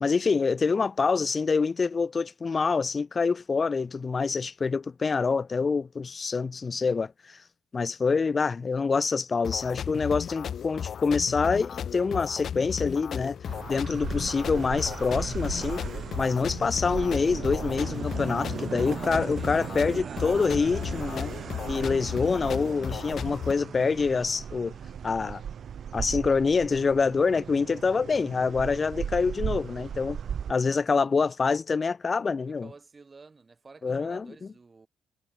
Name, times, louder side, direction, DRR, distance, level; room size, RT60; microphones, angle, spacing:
voice 1, 0.0-7.4 7.7-13.4 13.7-15.8 16.2-21.3 21.7-24.7 25.0-25.4 25.9-30.2 30.5-32.7 33.8-34.3, left 4 dB, 35° left, 0.4 m, -26 dB
sound 1, 9.4-23.5, left 8 dB, 60° left, 1.5 m, -35 dB
sound 2, 11.7-30.6, right 15 dB, 90° right, 5.8 m, -55 dB
sound 3, 13.5-30.5, right 8 dB, 55° right, 1.1 m, -37 dB
voice 2, 18.7-20.8 32.5-34.9, right 4 dB, 30° right, 5.0 m, -51 dB
cardioid pair, 90°, 0 cm